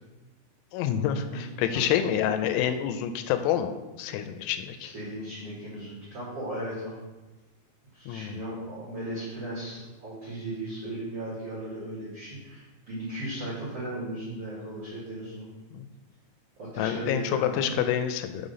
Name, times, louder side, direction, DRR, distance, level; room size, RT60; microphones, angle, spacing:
voice 1, 0.7-3.7 4.0-4.9 8.1-8.4 15.7-15.9 16.8-18.5, left 9 dB, 85° left, 9 dB, 2.9 m, -27 dB
voice 2, 4.8-7.0 7.9-15.4 16.6-17.8, right 1 dB, 60° right, -8 dB, 1.5 m, -36 dB
6.0 x 5.6 x 5.1 m, 1.2 s
omnidirectional pair, 5.4 m